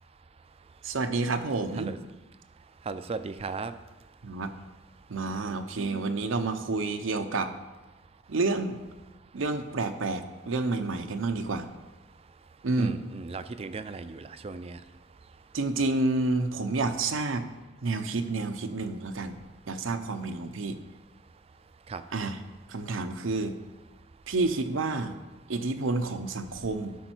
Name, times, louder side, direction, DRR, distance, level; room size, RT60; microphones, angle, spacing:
voice 1, 0.8-2.0 4.2-4.5 5.1-7.5 8.3-8.8 9.3-11.7 12.6-13.0 15.5-17.5 17.8-19.4 19.7-20.8 22.1-22.4 22.7-23.6 24.3-25.1 25.5-27.0, right 3 dB, 90° right, 8 dB, 0.7 m, -29 dB
voice 2, 2.9-3.7 12.8-14.8 21.9-22.0, right 4 dB, 30° right, 12 dB, 0.4 m, -36 dB
12.0 x 5.5 x 4.5 m, 1.1 s
head